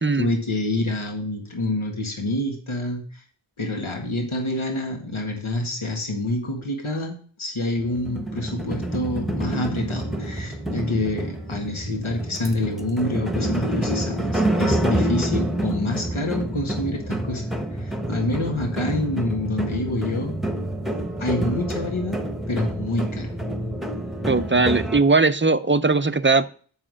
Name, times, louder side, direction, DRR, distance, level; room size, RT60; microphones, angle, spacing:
voice 1, 0.1-3.2 3.6-20.4 21.2-22.2 22.5-23.3, left 1 dB, 75° left, 1 dB, 1.8 m, -27 dB
sound 1, 7.8-25.0, right 1 dB, ahead, 1.1 m, -27 dB
voice 2, 24.3-26.5, right 3 dB, 25° right, 12 dB, 0.6 m, -19 dB
7.5 x 5.7 x 6.3 m, 0.44 s
wide cardioid pair, 55°, 49 cm